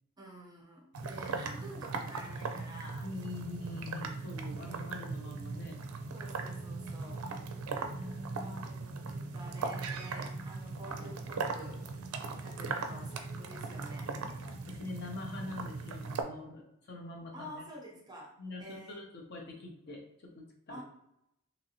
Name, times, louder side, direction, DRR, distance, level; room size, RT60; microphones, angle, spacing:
voice 1, 0.2-3.1 4.6-4.9 6.1-7.2 8.4-11.8 12.4-14.1 17.3-18.3 18.6-19.0 20.7-20.8, right 1 dB, 20° right, -1 dB, 0.6 m, -49 dB
sound 1, 0.9-16.2, right 4 dB, 80° right, 0.4 m, -39 dB
voice 2, 3.0-5.8 7.9-8.9 12.7-13.1 14.7-17.6 18.4-20.8, left 2 dB, 50° left, 1 dB, 0.6 m, -44 dB
2.8 x 2.6 x 2.8 m, 0.80 s
head